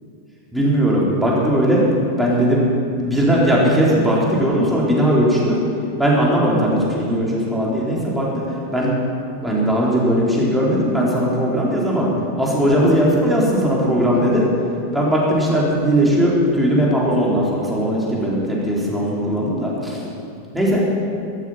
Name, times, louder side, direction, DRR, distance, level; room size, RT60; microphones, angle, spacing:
voice 1, 0.5-1.8 2.2-2.6 3.0-5.6 6.0-8.4 8.7-8.9 9.4-12.1 12.4-14.4 14.9-20.1 20.5-20.8, equal, 5° right, -5 dB, 4.2 m, -18 dB
14.5 x 14.5 x 5.9 m, 2.5 s
figure-of-eight pair, 90°, 0 cm